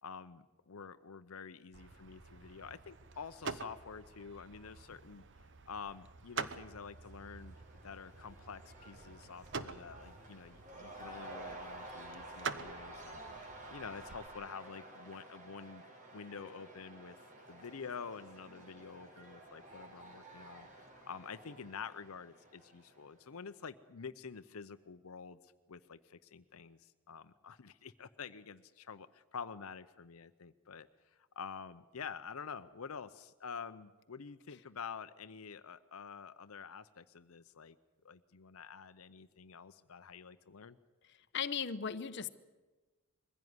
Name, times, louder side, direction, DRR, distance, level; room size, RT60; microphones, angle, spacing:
voice 1, 0.0-5.2 5.7-7.6 7.8-13.2 13.7-15.8 16.1-37.8 38.0-40.8, left 6 dB, 80° left, 12 dB, 0.7 m, -48 dB
sound 1, 1.7-14.3, right 5 dB, 55° right, 1.0 m, -47 dB
Cheering / Crowd, 6.6-23.3, right 1 dB, 35° right, 3.6 m, -52 dB
voice 2, 41.3-42.3, left 7 dB, 55° left, 10 dB, 0.9 m, -36 dB
22.0 x 16.0 x 9.6 m, 1.2 s
head